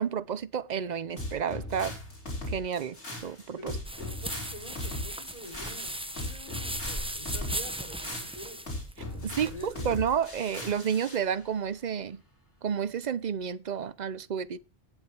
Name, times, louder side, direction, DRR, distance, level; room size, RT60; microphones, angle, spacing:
voice 1, 0.0-1.9 2.5-3.0 3.2-3.7 9.2-12.2 12.6-14.6, right 7 dB, 45° right, 0.7 m, -30 dB
sound 1, 1.2-11.2, left 1 dB, 70° left, 5.2 m, -38 dB
voice 2, 3.6-8.6 9.1-10.0, equal, 30° left, 3.7 m, -46 dB
sound 2, 3.8-10.7, right 1 dB, 5° right, 0.7 m, -38 dB
19.0 x 7.4 x 3.3 m
omnidirectional pair, 1.2 m